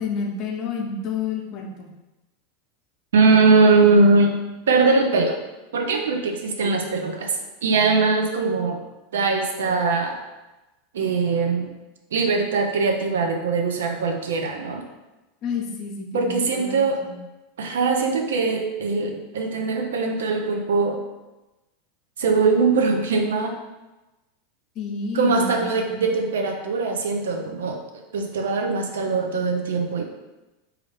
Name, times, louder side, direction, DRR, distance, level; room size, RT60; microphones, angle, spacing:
voice 1, 0.0-1.9 15.4-17.2 24.8-26.0, left 5 dB, 45° left, 1 dB, 0.6 m, -30 dB
voice 2, 3.1-4.4 4.7-5.4 5.7-7.4 7.6-8.8 9.1-10.2 10.9-11.7 12.1-14.8 16.1-17.0 17.6-21.0 22.2-23.6 25.1-27.8 28.1-30.0, right 4 dB, 85° right, 3 dB, 0.5 m, -21 dB
3.1 x 2.4 x 3.1 m, 1.0 s
hypercardioid pair, 110°, 0 cm